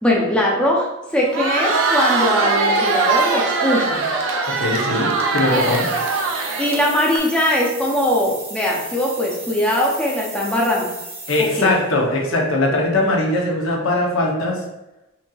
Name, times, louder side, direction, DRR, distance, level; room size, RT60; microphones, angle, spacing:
voice 1, 0.0-0.9 1.1-4.1 5.5-5.6 6.6-10.9 11.4-11.7, left 1 dB, 5° left, -3 dB, 0.5 m, -20 dB
Crowd, 1.2-7.2, right 4 dB, 80° right, 0.4 m, -21 dB
voice 2, 4.5-5.9 11.3-14.6, left 2 dB, 90° left, -1 dB, 0.7 m, -20 dB
sound 1, 5.4-11.9, right 2 dB, 30° right, 0.8 m, -35 dB
3.8 x 2.7 x 2.3 m, 0.96 s
head